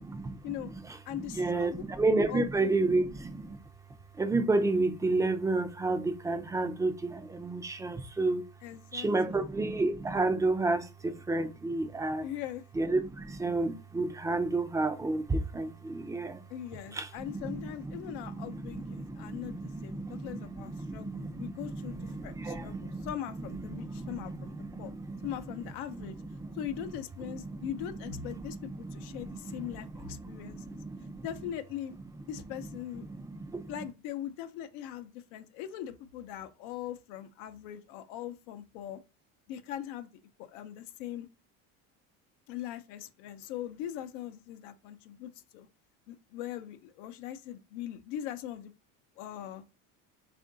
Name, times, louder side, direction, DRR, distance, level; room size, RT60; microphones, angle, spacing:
voice 1, 0.0-3.6 4.1-8.4 8.9-12.3 12.8-16.4 16.9-23.1 23.4-26.9 27.4-28.0 28.3-31.3 32.6-32.7 33.0-33.7, right 2 dB, 10° right, 0.4 m, -32 dB
voice 2, 1.1-1.8 2.3-2.7 8.6-9.4 12.2-12.6 16.5-24.9 25.2-26.2 26.5-30.8 31.2-31.9 32.3-33.1 33.7-39.0 39.5-40.1 40.4-41.3 42.5-45.7 46.1-48.7 49.2-49.6, left 11 dB, 90° left, 0.6 m, -41 dB
3.6 x 2.5 x 3.7 m
cardioid pair, 125°, 36 cm